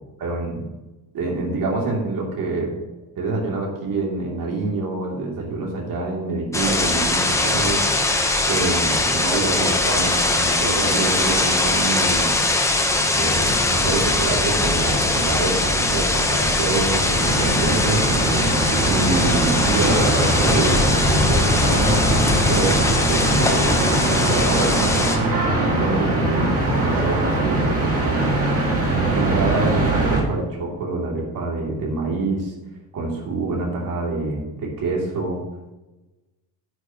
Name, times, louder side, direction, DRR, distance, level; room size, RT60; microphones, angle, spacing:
voice 1, 0.2-0.7 1.1-2.7 3.2-12.3 13.1-18.1 18.8-25.0 25.3-28.3 29.0-32.5 32.9-35.4, right 3 dB, 55° right, -1 dB, 2.7 m, -26 dB
sound 1, 6.5-25.2, left 2 dB, 5° left, 0.8 m, -21 dB
sound 2, 17.1-30.2, right 2 dB, 35° right, 2.0 m, -22 dB
9.5 x 9.2 x 2.9 m, 1.1 s
cardioid pair, 140°, 40 cm